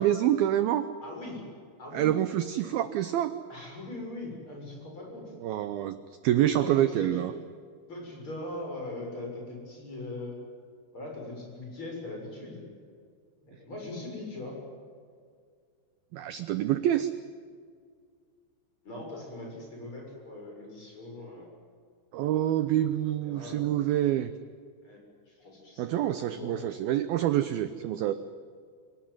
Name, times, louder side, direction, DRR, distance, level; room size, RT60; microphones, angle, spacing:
voice 1, 0.0-0.9 1.9-3.3 5.4-6.0 6.2-7.3 16.1-17.1 22.1-24.3 25.8-28.1, right 12 dB, 85° right, 11 dB, 2.1 m, -26 dB
voice 2, 1.0-1.5 1.8-2.1 3.5-5.3 6.6-7.3 7.9-10.3 10.9-12.6 13.4-14.6 18.8-21.5 23.2-23.7 24.8-25.0 25.3-26.6, left 2 dB, 25° left, 0 dB, 7.6 m, -40 dB
26.5 x 18.0 x 9.6 m, 2.1 s
omnidirectional pair, 5.4 m